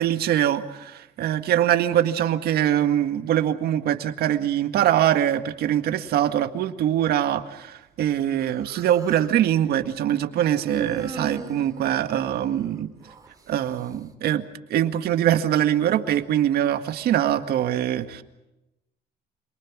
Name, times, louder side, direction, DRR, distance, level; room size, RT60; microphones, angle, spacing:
voice 1, 0.0-12.9 13.5-14.4 14.7-18.2, right 11 dB, 70° right, 8 dB, 1.9 m, -23 dB
Human voice, 8.4-9.4 10.5-13.3, right 4 dB, 20° right, 3.5 m, -38 dB
27.5 x 24.0 x 6.2 m, 0.94 s
cardioid pair, 110°, 17 cm